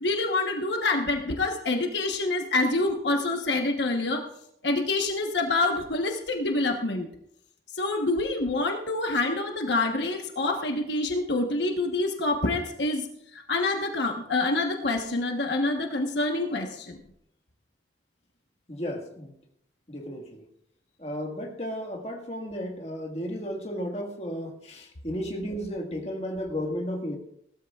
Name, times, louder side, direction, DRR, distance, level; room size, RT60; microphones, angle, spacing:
voice 1, 0.0-4.3 4.6-7.1 7.7-13.1 13.3-17.0, left 2 dB, 75° left, 3 dB, 1.2 m, -26 dB
voice 2, 18.7-19.3 19.9-20.4 21.0-27.2, equal, 35° left, 1 dB, 1.7 m, -33 dB
18.5 x 13.0 x 2.4 m, 0.74 s
head